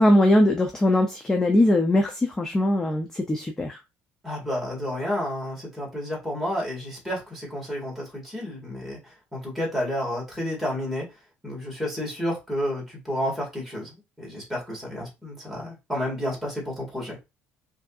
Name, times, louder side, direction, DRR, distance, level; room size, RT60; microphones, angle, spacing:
voice 1, 0.0-3.8, left 1 dB, 10° left, 3 dB, 0.5 m, -21 dB
voice 2, 4.2-11.1 11.4-17.2, equal, 5° right, -3 dB, 1.8 m, -31 dB
5.0 x 2.7 x 2.4 m, 0.24 s
cardioid pair, 155°, 4 cm